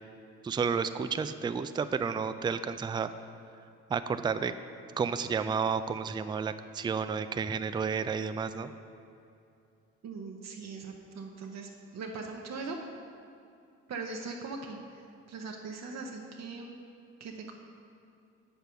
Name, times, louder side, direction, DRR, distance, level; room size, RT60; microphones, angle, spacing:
voice 1, 0.4-3.1 3.9-4.5 5.0-8.7, right 6 dB, 15° right, 11 dB, 0.3 m, -31 dB
voice 2, 10.0-12.8 13.9-15.0 15.3-16.8 17.2-17.6, right 4 dB, 60° right, 1 dB, 0.9 m, -40 dB
7.9 x 6.9 x 5.7 m, 2.6 s
cardioid pair, 90°, 30 cm